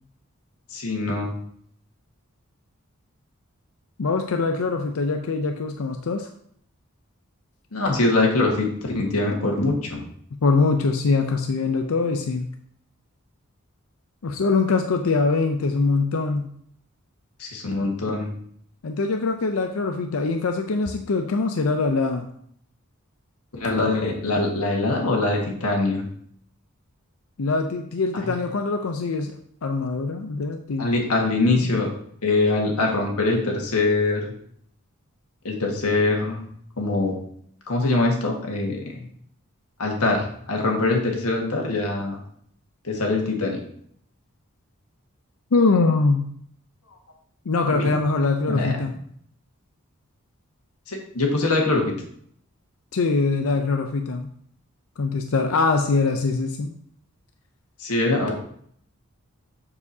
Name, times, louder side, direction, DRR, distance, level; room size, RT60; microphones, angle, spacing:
voice 1, 0.7-1.4 7.7-10.0 17.4-18.3 23.5-26.1 28.1-28.3 30.8-31.9 32.2-34.3 35.4-36.4 36.8-37.2 37.7-39.0 39.8-42.2 42.8-43.6 47.7-47.9 48.5-48.8 50.9-51.8 57.8-58.3, left 2 dB, 90° left, 1 dB, 1.6 m, -23 dB
voice 2, 4.0-6.3 10.4-12.5 14.2-16.5 18.8-22.3 27.4-29.4 29.6-30.9 31.6-31.8 45.5-46.3 47.5-49.0 52.9-54.3 55.0-56.7, left 3 dB, 70° left, 5 dB, 0.5 m, -23 dB
7.0 x 6.9 x 2.7 m, 0.65 s
head